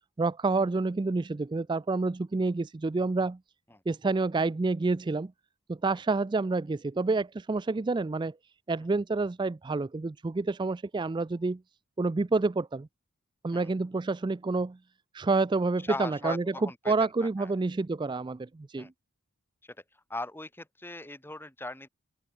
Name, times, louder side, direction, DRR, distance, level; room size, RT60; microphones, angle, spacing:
voice 1, 0.2-3.4 3.9-5.3 5.7-8.3 8.7-11.6 12.0-12.9 13.4-14.8 15.1-18.9, right 3 dB, 20° right, 0.3 m, -28 dB
voice 2, 15.9-16.9 17.2-17.5 18.8-18.9 19.6-19.8 20.1-21.9, left 2 dB, 10° left, 2.6 m, -39 dB
open air
head